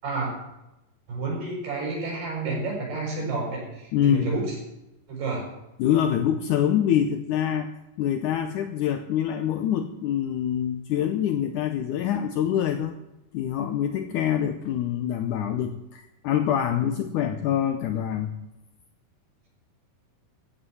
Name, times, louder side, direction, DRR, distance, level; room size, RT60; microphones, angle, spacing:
voice 1, 0.0-0.3 1.1-4.6 5.1-5.5, right 3 dB, 70° right, -4 dB, 8.1 m, -30 dB
voice 2, 3.9-4.3 5.8-7.7 8.0-12.9 13.3-18.4, left 10 dB, 85° left, 7 dB, 1.8 m, -25 dB
15.5 x 8.5 x 7.9 m, 0.93 s
omnidirectional pair, 4.6 m